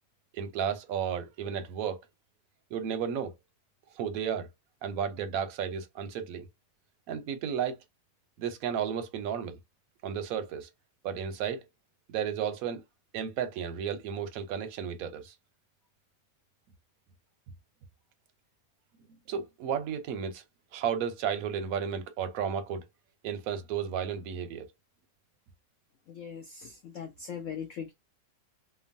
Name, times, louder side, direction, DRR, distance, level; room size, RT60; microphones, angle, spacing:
voice 1, 0.3-2.0 2.7-3.3 3.9-4.5 4.8-6.5 7.1-7.8 8.4-9.5 10.0-10.7 11.0-11.7 12.1-12.8 13.1-15.3 19.3-20.4 20.7-22.8 23.2-24.6, right 8 dB, 70° right, 0.9 m, -33 dB
voice 2, 26.1-27.9, left 7 dB, 80° left, 0.7 m, -40 dB
3.0 x 2.2 x 2.5 m
omnidirectional pair, 1.9 m